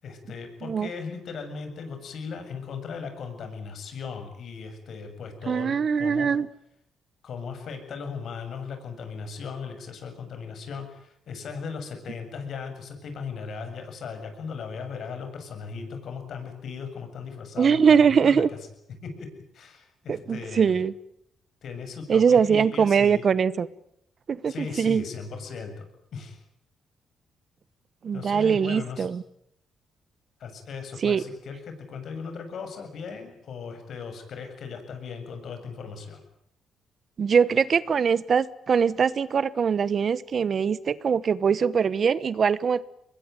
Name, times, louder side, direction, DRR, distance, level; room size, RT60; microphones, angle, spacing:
voice 1, 0.0-6.3 7.2-18.4 19.0-19.3 19.5-20.7 21.6-23.2 24.5-25.9 26.1-26.4 28.1-29.1 30.4-36.2, left 5 dB, 65° left, 7 dB, 7.4 m, -37 dB
voice 2, 5.5-6.5 17.6-18.5 20.1-20.9 22.1-23.7 24.3-25.0 28.0-29.2 31.0-31.2 37.2-42.8, right 6 dB, 50° right, 18 dB, 1.1 m, -22 dB
23.5 x 21.5 x 9.3 m, 0.77 s
cardioid pair, 90°, 0 cm